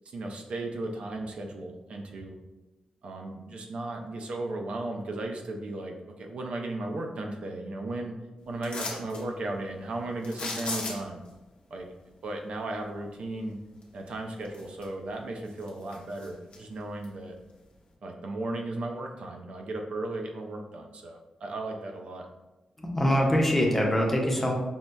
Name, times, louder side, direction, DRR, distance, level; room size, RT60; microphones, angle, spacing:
voice 1, 0.1-2.4 3.0-8.1 8.5-11.2 11.7-11.9 12.2-13.6 13.9-17.3 18.0-22.3, right 2 dB, 70° right, 2 dB, 0.4 m, -35 dB
sound 1, 8.6-9.2 10.2-11.3 13.8-13.9 14.4-15.1 15.5-16.6 17.0-17.1, left 3 dB, 70° left, 0.7 m, -36 dB
voice 2, 22.8-24.5, equal, 10° left, -1 dB, 0.6 m, -24 dB
5.3 x 2.0 x 2.2 m, 1.1 s
cardioid pair, 90°, 2 cm